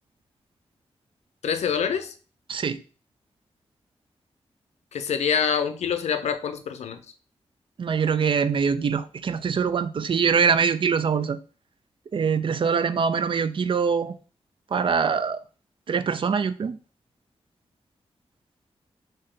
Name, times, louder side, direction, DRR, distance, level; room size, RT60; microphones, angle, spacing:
voice 1, 1.4-2.1 4.9-7.0, left 7 dB, 85° left, 0.5 m, -26 dB
voice 2, 2.5-2.8 7.8-11.4 12.1-14.2 14.7-15.4 15.9-16.8, right 6 dB, 50° right, 0.4 m, -23 dB
3.3 x 2.7 x 3.6 m
cardioid pair, 60°, 11 cm